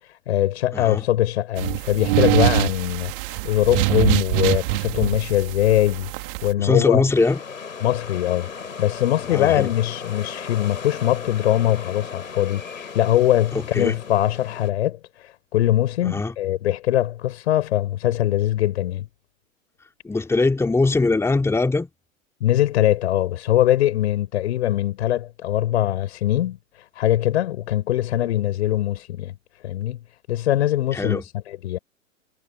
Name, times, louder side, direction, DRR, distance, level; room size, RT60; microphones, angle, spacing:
voice 1, 0.3-6.1 6.4-7.0 7.8-8.5 8.8-15.0 15.5-19.1 22.4-26.6 27.0-29.4 29.6-31.2 31.5-31.8, left 13 dB, 55° left, 6.3 m, -22 dB
sound 1, 1.6-6.5, right 22 dB, 40° right, 2.8 m, -23 dB
voice 2, 6.6-7.4 9.3-9.7 13.5-13.9 16.0-16.3 20.0-21.9 30.9-31.2, left 3 dB, 5° left, 3.4 m, -21 dB
sound 2, 7.1-14.7, left 5 dB, 75° left, 5.8 m, -36 dB
figure-of-eight pair, 105°, 40 cm